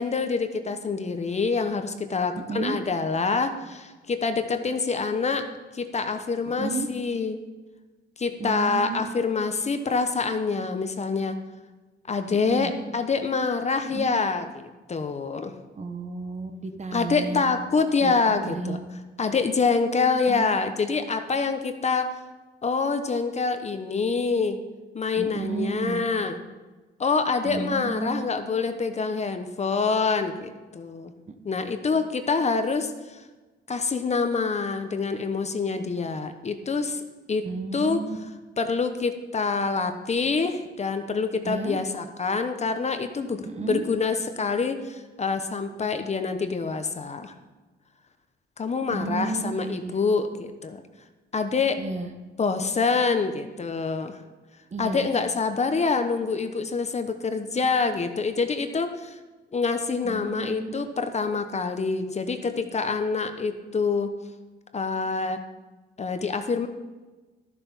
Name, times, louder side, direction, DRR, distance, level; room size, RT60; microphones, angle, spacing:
voice 1, 0.0-5.4 5.7-7.4 8.2-11.4 12.1-15.5 16.9-18.8 19.2-22.1 22.6-24.6 24.9-26.4 27.0-31.1 31.4-33.2 33.7-37.0 37.3-38.0 38.6-47.3 48.6-50.8 51.3-51.8 52.4-54.2 54.8-59.2 59.5-64.1 64.7-65.4 66.0-66.7, left 4 dB, 35° left, 8 dB, 1.0 m, -26 dB
voice 2, 6.6-6.9 8.4-9.0 12.4-12.7 13.9-14.1 15.8-17.5 18.0-18.8 20.3-20.5 25.2-26.0 27.4-28.2 31.3-31.6 37.4-38.2 41.4-41.8 43.5-43.8 48.9-49.9 51.8-52.1 54.7-55.1 60.0-60.7, right 4 dB, 35° right, 6 dB, 1.2 m, -32 dB
12.5 x 7.2 x 5.5 m, 1.2 s
cardioid pair, 90°, 20 cm